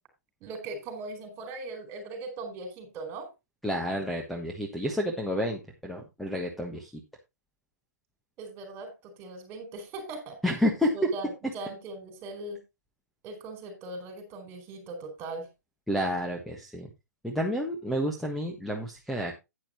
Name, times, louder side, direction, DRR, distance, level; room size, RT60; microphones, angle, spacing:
voice 1, 0.4-3.3 8.4-10.4 10.9-12.6 13.2-15.5, right 2 dB, 25° right, 6 dB, 4.6 m, -39 dB
voice 2, 3.6-6.9 10.4-10.9 15.9-16.9 17.2-19.4, equal, ahead, 1 dB, 1.4 m, -30 dB
11.0 x 9.7 x 3.0 m, 0.24 s
figure-of-eight pair, 125°, 10 cm